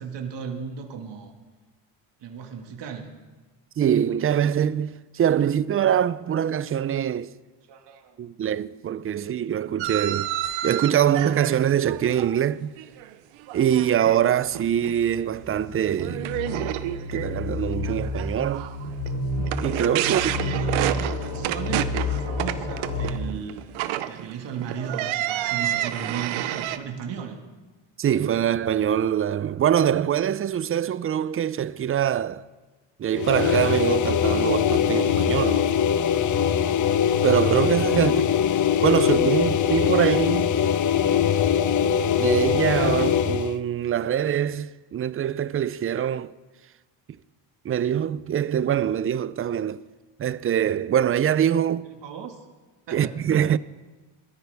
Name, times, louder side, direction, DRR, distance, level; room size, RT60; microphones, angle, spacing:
voice 1, 0.0-1.3 2.2-3.1 7.7-8.2 20.1-23.6 24.1-27.4 37.9-38.3 51.8-52.4 52.9-53.2, right 7 dB, 60° right, 1.9 m, -36 dB
voice 2, 3.8-7.3 8.2-10.3 10.6-12.7 13.5-16.3 17.1-18.7 19.6-20.3 28.0-32.5 33.0-35.7 37.2-38.2 38.8-40.5 42.2-46.3 47.6-49.8 50.2-51.9 52.9-53.6, right 9 dB, 30° right, 0.4 m, -23 dB
sound 1, 9.8-13.1 13.4-14.2 14.5-14.9 15.4-15.5 16.0-26.8, right 13 dB, 85° right, 0.8 m, -30 dB
sound 2, 14.3-23.1, left 2 dB, 65° left, 4.9 m, -30 dB
sound 3, 33.1-43.6, left 8 dB, 40° left, 0.6 m, -22 dB
20.5 x 13.5 x 3.5 m
cardioid pair, 90°, 47 cm